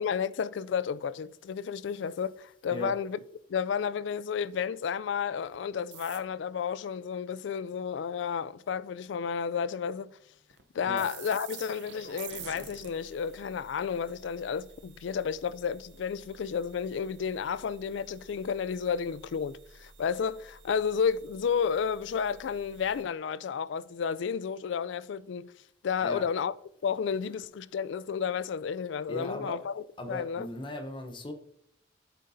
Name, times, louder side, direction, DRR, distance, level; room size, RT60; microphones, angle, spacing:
voice 1, 0.0-3.2 3.5-10.2 10.7-25.5 25.8-26.5 26.8-30.5, left 6 dB, 75° left, 0.3 m, -32 dB
sound 1, 5.5-5.6 5.9-6.5 10.5-10.6 11.0-23.0, right 8 dB, 65° right, 0.7 m, -50 dB
voice 2, 29.1-29.6 30.0-31.3, left 1 dB, 25° left, 0.7 m, -37 dB
8.7 x 6.6 x 2.7 m
head